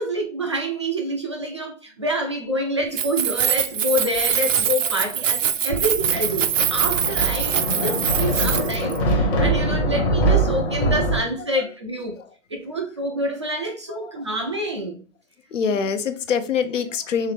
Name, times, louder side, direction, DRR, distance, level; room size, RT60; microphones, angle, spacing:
voice 1, 0.0-12.2 12.5-15.0, equal, 25° right, 0.3 m, -27 dB
Keys jangling, 2.8-9.0, right 9 dB, 80° right, 0.6 m, -23 dB
Thunder, 5.7-11.2, right 1 dB, 25° left, 0.8 m, -23 dB
voice 2, 13.9-14.3 15.5-17.3, left 6 dB, 75° left, 0.7 m, -26 dB
3.7 x 3.2 x 3.2 m
hypercardioid pair, 145°, 38 cm